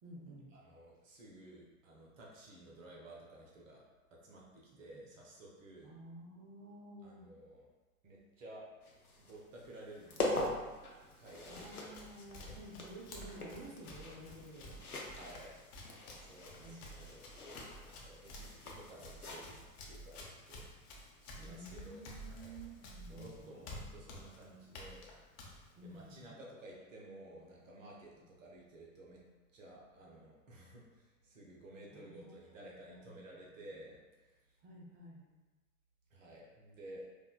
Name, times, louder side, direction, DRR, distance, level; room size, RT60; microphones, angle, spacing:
voice 1, 0.0-0.5 4.9-5.0 5.8-7.3 11.5-14.8 16.6-17.2 21.4-23.6 25.7-26.4 31.9-33.5 34.6-35.4, right 1 dB, 20° right, -2 dB, 0.4 m, -52 dB
voice 2, 0.5-5.9 7.0-7.7 8.0-8.7 9.3-10.8 11.2-12.1 12.4-12.6 15.0-15.6 16.2-17.3 17.8-20.7 21.2-22.6 23.0-25.2 25.8-29.2 29.5-34.6 36.1-37.0, right 1 dB, 60° right, -3 dB, 0.8 m, -54 dB
sound 1, 8.8-19.6, left 2 dB, 90° left, 0.6 m, -43 dB
Run, 11.0-26.3, left 1 dB, 45° left, 0.7 m, -52 dB
4.9 x 2.1 x 2.2 m, 1.2 s
figure-of-eight pair, 90°, 43 cm